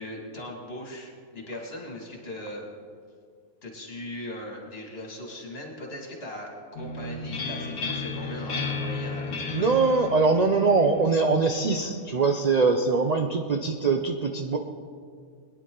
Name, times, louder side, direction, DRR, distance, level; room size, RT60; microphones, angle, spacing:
voice 1, 0.0-2.6 3.6-9.6, left 1 dB, 45° left, -1 dB, 2.5 m, -39 dB
sound 1, 6.7-12.3, left 3 dB, 80° left, 1.7 m, -34 dB
voice 2, 9.5-14.6, right 4 dB, 45° right, 4 dB, 0.5 m, -22 dB
21.5 x 10.5 x 3.9 m, 2.2 s
omnidirectional pair, 1.5 m